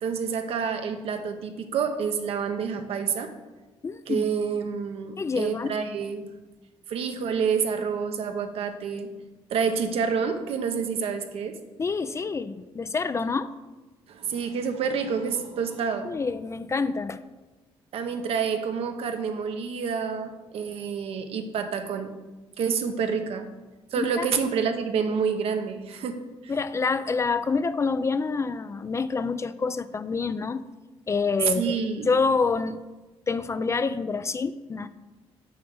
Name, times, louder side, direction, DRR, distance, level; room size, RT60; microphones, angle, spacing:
voice 1, 0.0-3.3 4.1-6.3 6.9-9.1 9.5-11.6 14.1-16.2 17.9-22.1 22.6-23.5 23.9-26.5 31.5-32.1, right 6 dB, 70° right, 7 dB, 0.9 m, -28 dB
voice 2, 3.8-4.3 5.2-5.7 11.8-13.5 16.0-17.2 24.0-24.3 26.5-30.6 31.1-31.7 32.1-32.8 33.3-34.9, left 4 dB, 30° left, 13 dB, 0.4 m, -27 dB
7.1 x 4.9 x 6.4 m, 1.2 s
cardioid pair, 95°, 10 cm